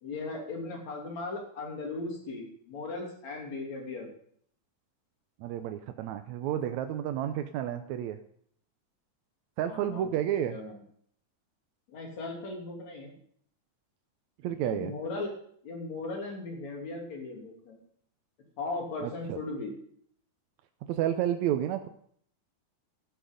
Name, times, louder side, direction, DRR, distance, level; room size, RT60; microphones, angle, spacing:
voice 1, 0.0-4.1 9.7-10.8 11.9-13.1 14.6-15.3 15.6-17.8 18.6-19.7, left 3 dB, 60° left, 1 dB, 3.9 m, -37 dB
voice 2, 5.4-8.2 9.6-10.6 14.4-14.9 19.0-19.4 20.9-21.9, right 11 dB, 75° right, 8 dB, 1.8 m, -31 dB
14.0 x 9.1 x 5.2 m, 0.63 s
omnidirectional pair, 3.7 m